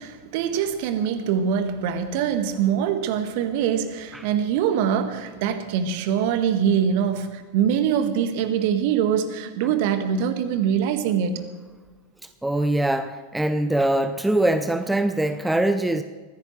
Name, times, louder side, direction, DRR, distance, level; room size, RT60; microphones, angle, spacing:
voice 1, 0.0-11.4, right 8 dB, 50° right, 8 dB, 1.7 m, -23 dB
voice 2, 12.4-16.0, right 1 dB, 5° right, 10 dB, 0.7 m, -22 dB
23.5 x 16.0 x 3.3 m, 1.4 s
figure-of-eight pair, 90°, 0 cm